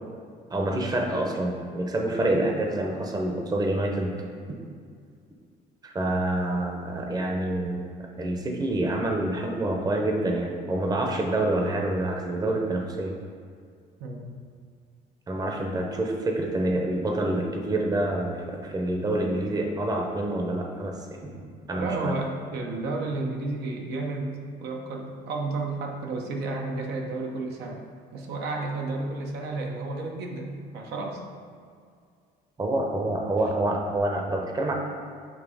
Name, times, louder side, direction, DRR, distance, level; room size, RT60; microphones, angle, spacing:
voice 1, 0.5-4.1 5.8-7.8 8.2-13.1 15.3-21.4 21.7-22.1 32.6-34.7, right 1 dB, 20° right, 2 dB, 0.8 m, -27 dB
voice 2, 14.0-14.4 21.7-27.8 28.1-31.2, right 3 dB, 80° right, 1 dB, 0.8 m, -32 dB
7.3 x 2.8 x 4.9 m, 2.2 s
cardioid pair, 110°, 17 cm